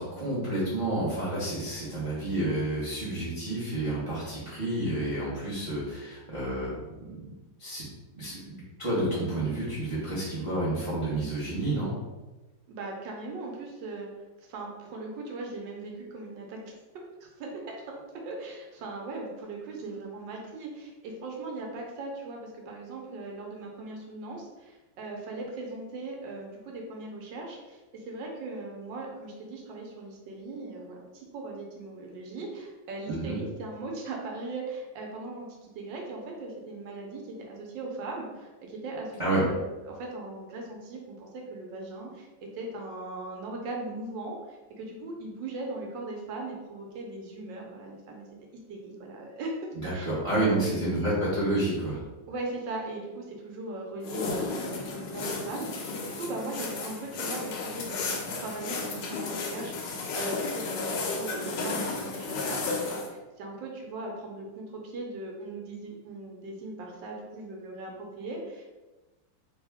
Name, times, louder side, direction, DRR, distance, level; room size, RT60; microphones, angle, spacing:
voice 1, 0.0-6.8 7.1-7.2 7.6-7.8 8.1-11.9 33.1-33.4 39.2-39.4 49.8-52.0, right 1 dB, 40° right, -8 dB, 0.4 m, -29 dB
voice 2, 12.7-14.1 14.4-16.8 17.2-48.4 48.7-49.5 49.8-50.1 50.4-51.1 52.3-58.0 58.4-68.6, right 2 dB, 80° right, 0 dB, 1.3 m, -39 dB
sound 1, 54.0-63.1, left 3 dB, 75° left, 1.2 m, -33 dB
3.3 x 2.2 x 3.4 m, 1.1 s
omnidirectional pair, 2.1 m